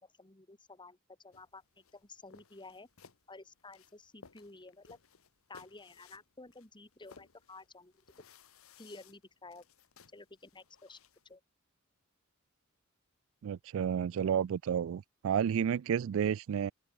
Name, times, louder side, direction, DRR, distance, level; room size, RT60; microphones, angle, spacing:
voice 1, 0.0-2.9 3.3-5.0 5.5-7.9 8.8-9.6 10.1-11.0 11.3-11.4, left 3 dB, 20° left, 2.1 m, -52 dB
sound 1, 1.3-11.4, left 5 dB, 80° left, 1.4 m, -61 dB
voice 2, 13.4-16.7, right 8 dB, 70° right, 0.3 m, -31 dB
open air
head